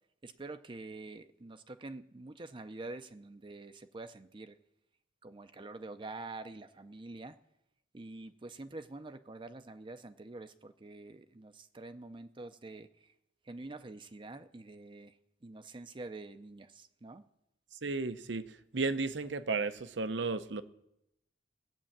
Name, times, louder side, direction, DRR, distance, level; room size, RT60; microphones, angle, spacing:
voice 1, 0.2-4.6 5.2-7.4 7.9-13.1 13.4-15.2 15.4-17.2, right 2 dB, 25° right, 9 dB, 0.5 m, -46 dB
voice 2, 17.8-20.6, right 3 dB, 70° right, 12 dB, 0.8 m, -34 dB
16.5 x 8.4 x 7.3 m, 0.84 s
head